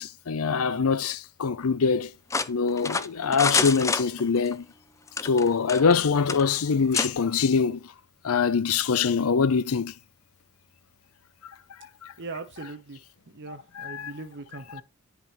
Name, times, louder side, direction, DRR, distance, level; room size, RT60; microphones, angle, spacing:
voice 1, 0.0-2.1 2.5-4.6 5.2-7.8 8.2-9.9 13.8-14.1, left 5 dB, 75° left, 0.6 m, -24 dB
sound 1, 2.3-4.5 5.1-6.0 6.3-6.4 6.9-7.1, left 4 dB, 15° left, 0.4 m, -27 dB
voice 2, 12.2-13.0 13.3-14.8, right 3 dB, 55° right, 0.9 m, -40 dB
10.5 x 5.1 x 3.0 m
head